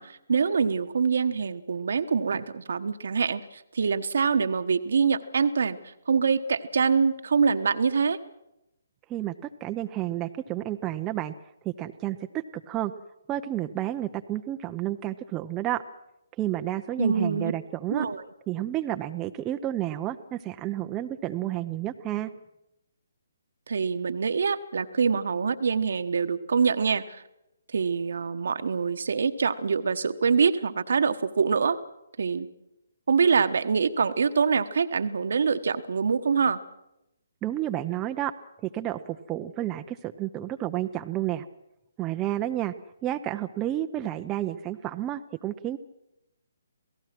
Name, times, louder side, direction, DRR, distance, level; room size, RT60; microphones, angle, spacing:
voice 1, 0.0-8.2 17.0-17.5 17.9-18.2 23.7-27.2 27.7-31.8 32.2-32.5 33.1-36.6, right 5 dB, 65° right, 10 dB, 1.2 m, -25 dB
voice 2, 9.1-11.3 11.6-12.2 12.7-12.9 13.3-15.8 16.4-18.1 18.5-22.3 37.4-38.3 38.6-41.5 42.0-42.7 43.0-45.8, right 13 dB, 20° right, 6 dB, 0.8 m, -31 dB
28.0 x 18.0 x 6.1 m, 0.87 s
figure-of-eight pair, 140°, 0 cm